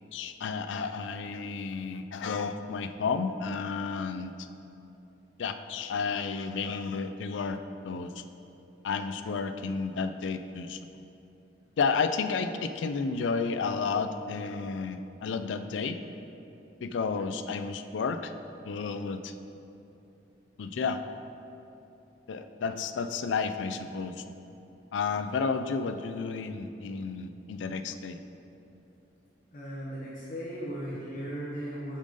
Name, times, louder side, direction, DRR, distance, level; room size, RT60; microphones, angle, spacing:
voice 1, 0.1-4.5 5.4-7.6 7.8-8.2 8.8-10.8 11.8-16.0 16.8-18.3 18.6-19.3 20.6-21.0 22.3-24.2 24.9-28.2, left 5 dB, 85° left, 9 dB, 0.4 m, -32 dB
voice 2, 29.5-32.0, equal, 45° left, -8 dB, 1.2 m, -37 dB
8.6 x 5.2 x 3.8 m, 2.9 s
head